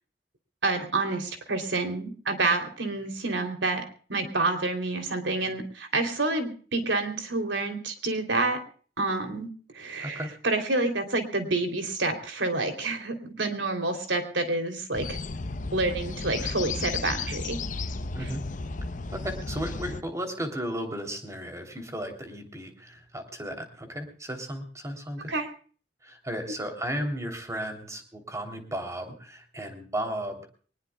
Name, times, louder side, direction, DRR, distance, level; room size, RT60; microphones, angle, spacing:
voice 1, 0.6-3.8 4.1-8.6 9.0-15.2 15.7-17.6 25.3-25.5, right 2 dB, 90° right, 6 dB, 3.2 m, -28 dB
voice 2, 10.0-10.3 18.1-18.4 19.1-25.3 26.0-30.4, equal, 15° right, 5 dB, 3.2 m, -34 dB
sound 1, 14.9-20.0, left 3 dB, 45° left, 0.8 m, -34 dB
24.0 x 20.0 x 2.3 m, 0.42 s
head